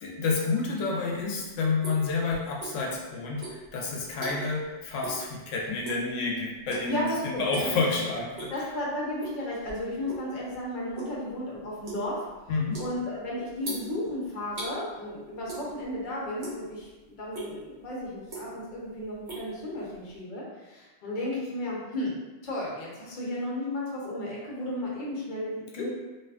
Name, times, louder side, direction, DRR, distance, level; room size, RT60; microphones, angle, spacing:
voice 1, 0.0-8.7 12.5-12.8 25.7-25.9, left 4 dB, 85° left, -2 dB, 0.9 m, -29 dB
sound 1, 1.1-3.0 3.3-4.6 5.0-5.2 5.6-6.1 6.6-7.0 7.4-7.8 8.2-8.7 9.2-10.3 10.6-14.7 15.4-16.0 16.3-16.9 17.3-17.5 18.0-18.7 19.0-20.1, right 3 dB, 80° right, 1.2 m, -40 dB
voice 2, 6.9-7.8 8.1-8.2 8.5-12.2 12.8-22.1 22.4-25.9, left 1 dB, 50° left, -5 dB, 0.7 m, -34 dB
2.7 x 2.4 x 2.3 m, 1.1 s
omnidirectional pair, 1.2 m